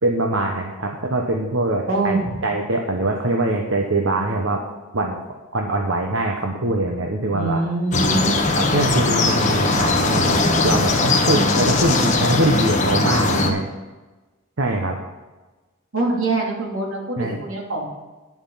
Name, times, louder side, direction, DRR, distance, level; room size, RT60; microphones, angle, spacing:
voice 1, 0.0-4.6 4.9-5.2 5.5-7.6 8.6-13.7 14.6-15.0 17.2-17.4, right 2 dB, 75° right, 1 dB, 1.1 m, -23 dB
voice 2, 1.9-2.3 7.3-8.3 15.9-17.9, right 2 dB, 90° right, -2 dB, 2.9 m, -24 dB
sound 1, 7.9-13.5, left 3 dB, 35° left, 1.3 m, -19 dB
10.5 x 7.3 x 5.7 m, 1.2 s
head